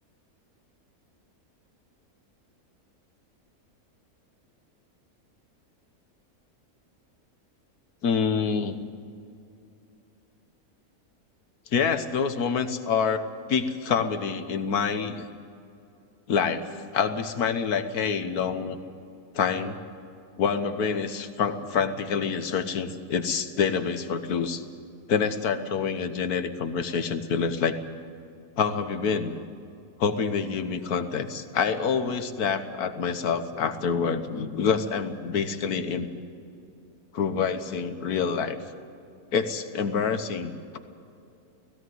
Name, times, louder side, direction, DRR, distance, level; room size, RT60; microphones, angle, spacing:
voice 1, 8.0-8.8 11.7-15.2 16.3-18.8 19.3-19.8 20.4-24.6 25.1-27.8 28.6-29.4 30.0-36.1 37.1-38.6 39.3-40.8, left 6 dB, 80° left, 9 dB, 1.6 m, -27 dB
17.5 x 16.0 x 9.5 m, 2.6 s
omnidirectional pair, 1.6 m